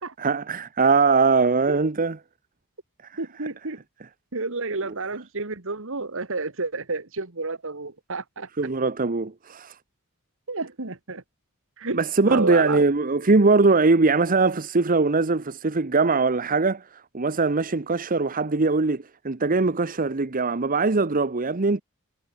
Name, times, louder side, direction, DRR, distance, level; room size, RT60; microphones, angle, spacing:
voice 1, 0.2-2.2 3.1-3.2 8.6-9.7 11.9-21.8, right 3 dB, 40° right, 0.9 m, -21 dB
voice 2, 3.2-3.8 4.3-8.5 10.5-11.2 11.8-12.0 12.3-12.8, right 3 dB, 65° right, 2.1 m, -30 dB
head